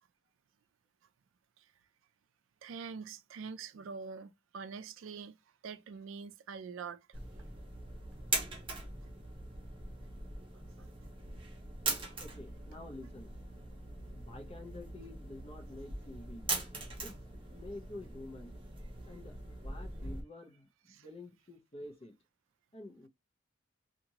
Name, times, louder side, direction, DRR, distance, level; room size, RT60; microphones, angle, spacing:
voice 1, 2.6-5.4 5.6-7.2 10.8-10.9 20.9-21.1, right 5 dB, 75° right, 0.4 m, -45 dB
sound 1, 7.1-20.2, right 3 dB, 25° right, 0.9 m, -41 dB
voice 2, 12.2-13.3 14.1-16.4 17.0-17.1 17.5-18.5 19.1-19.3 19.6-22.1 22.7-23.1, left 2 dB, 30° left, 0.8 m, -48 dB
2.9 x 2.5 x 2.7 m
head